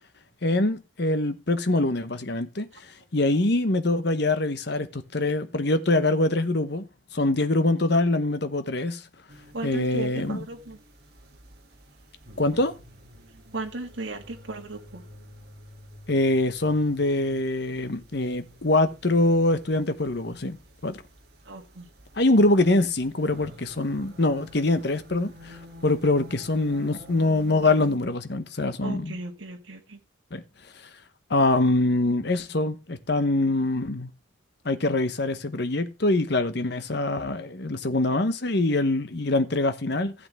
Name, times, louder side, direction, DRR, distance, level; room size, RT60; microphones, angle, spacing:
voice 1, 0.4-6.8 7.1-9.0 9.6-10.4 12.4-12.7 16.1-20.6 20.8-21.0 22.1-29.2 30.3-30.4 31.3-34.1 34.6-40.1, left 2 dB, 55° left, 1.0 m, -24 dB
sound 1, 9.3-28.0, equal, 50° right, 2.6 m, -49 dB
voice 2, 9.5-10.8 13.5-15.0 21.5-21.9 28.8-30.0, right 2 dB, 70° right, 1.9 m, -36 dB
15.5 x 8.0 x 3.5 m
head